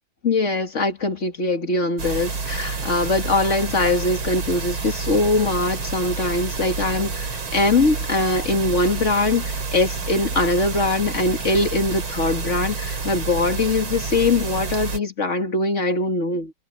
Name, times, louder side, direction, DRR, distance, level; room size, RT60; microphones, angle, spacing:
voice 1, 0.2-16.5, left 2 dB, 35° left, 2.2 m, -22 dB
sound 1, 2.0-15.0, right 4 dB, 70° right, 3.9 m, -29 dB
omnidirectional pair, 2.3 m